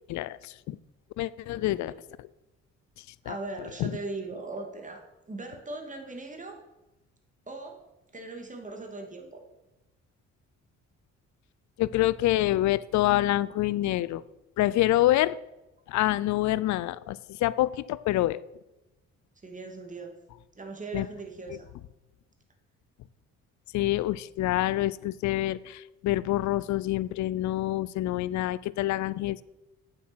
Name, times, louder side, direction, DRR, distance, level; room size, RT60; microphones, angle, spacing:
voice 1, 0.1-0.8 1.2-1.9 3.3-3.4 3.8-3.9 11.8-14.2 14.6-15.4 15.9-18.4 20.9-21.1 21.5-21.6 23.7-29.4, left 15 dB, 70° left, 19 dB, 0.5 m, -26 dB
voice 2, 1.5-1.9 3.2-6.6 7.5-7.8 8.1-9.4 19.4-20.1 20.5-21.7, right 3 dB, 25° right, 3 dB, 2.5 m, -39 dB
8.4 x 7.6 x 6.2 m, 0.96 s
cardioid pair, 90°, 30 cm